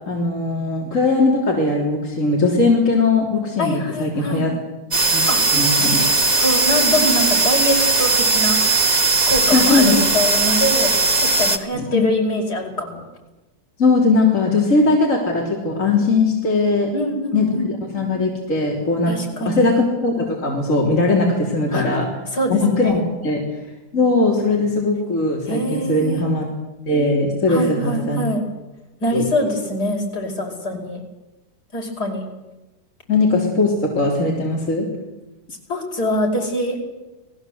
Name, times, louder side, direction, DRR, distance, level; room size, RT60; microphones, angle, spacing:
voice 1, 0.1-4.6 5.1-5.2 5.5-6.0 9.5-10.0 11.7-12.0 13.8-16.9 17.3-19.1 19.5-22.1 22.5-23.4 23.9-26.5 26.9-28.2 29.1-29.2 33.1-34.9, left 3 dB, 40° left, -2 dB, 4.0 m, -19 dB
voice 2, 3.6-4.5 5.3-5.4 5.8-8.6 9.3-10.9 11.2-13.0 16.9-17.8 19.1-19.8 21.7-21.9 22.3-23.0 25.5-26.2 27.5-28.4 29.0-31.0 31.7-32.3 35.7-36.9, equal, 60° left, 2 dB, 5.8 m, -24 dB
sound 1, 4.9-11.6, right 3 dB, 25° right, 1.6 m, -18 dB
29.5 x 20.0 x 8.0 m, 1.1 s
omnidirectional pair, 2.0 m